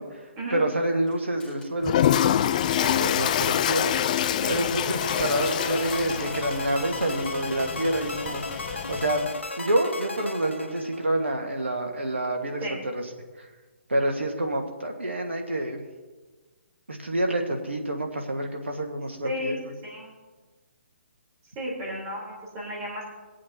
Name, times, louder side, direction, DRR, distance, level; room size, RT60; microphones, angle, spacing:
voice 1, 0.5-1.9 3.0-3.9 4.5-8.6 8.9-9.3 9.6-12.6 12.9-13.0 13.4-13.5 13.9-15.8 16.9-19.6, right 1 dB, 85° right, 3 dB, 1.4 m, -27 dB
sound 1, 1.1-1.2 1.4-1.7 2.0-2.3 4.3-5.4, left 3 dB, 10° left, 1.9 m, -48 dB
Toilet flush, 1.8-9.3, left 10 dB, 40° left, 0.3 m, -26 dB
voice 2, 2.8-3.6 4.4-4.6 12.6-12.8 19.2-19.6 19.8-20.1 21.6-23.0, equal, 25° right, -4 dB, 3.4 m, -34 dB
sound 2, 5.0-11.3, left 2 dB, 85° left, 0.9 m, -35 dB
21.0 x 8.5 x 2.8 m, 1.3 s
figure-of-eight pair, 135°, 6 cm